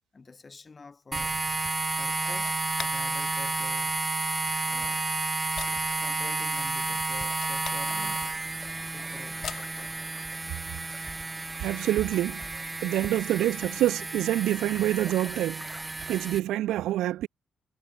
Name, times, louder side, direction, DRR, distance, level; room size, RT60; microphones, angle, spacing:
voice 1, 0.1-1.4 2.0-4.0 4.7-5.1 6.0-8.3 8.8-9.6, left 4 dB, 30° left, 2.2 m, -47 dB
sound 1, 1.1-16.4, right 3 dB, 20° right, 1.7 m, -31 dB
sound 2, 1.4-10.7, left 8 dB, 55° left, 1.3 m, -46 dB
sound 3, 7.9-16.3, equal, ahead, 3.0 m, -50 dB
voice 2, 11.6-12.4 12.8-15.6 16.0-17.3, right 14 dB, 85° right, 0.3 m, -26 dB
cardioid pair, 90°, 0 cm